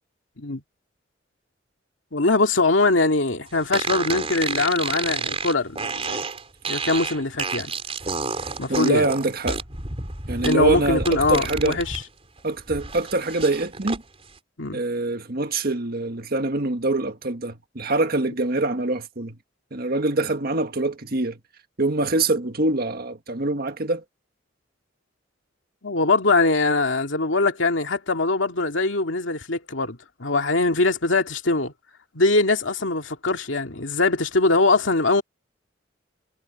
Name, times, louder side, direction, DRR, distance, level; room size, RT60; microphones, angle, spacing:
voice 1, 2.1-6.2 6.7-7.7 8.6-9.1 10.4-12.0 14.6-14.8 25.8-31.7 32.1-35.2, left 3 dB, 85° left, 2.3 m, -22 dB
sound 1, 3.7-12.0 12.4-14.0, right 4 dB, 35° right, 4.0 m, -30 dB
voice 2, 8.7-9.6 10.3-11.8 12.4-14.0 14.7-19.4 19.7-21.4 21.8-24.0, right 2 dB, 55° right, 1.7 m, -24 dB
head